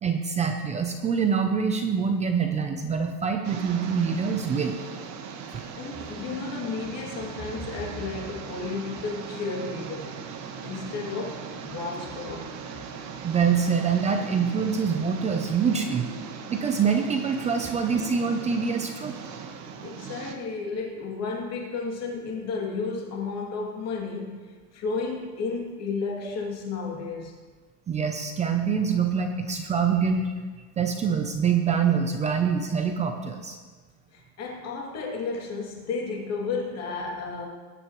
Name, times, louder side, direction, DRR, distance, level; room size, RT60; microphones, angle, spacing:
voice 1, 0.0-4.8 13.2-16.1 16.5-19.2 27.9-30.2 30.8-33.6, right 6 dB, 15° right, 4 dB, 0.5 m, -25 dB
sound 1, 3.4-20.3, right 5 dB, 35° right, 1.2 m, -39 dB
voice 2, 5.4-10.2 10.6-12.5 19.8-24.4 24.7-27.3 34.1-37.5, left 4 dB, 35° left, -1 dB, 2.6 m, -33 dB
20.5 x 9.9 x 3.1 m, 1.4 s
supercardioid pair, 155°, 47 cm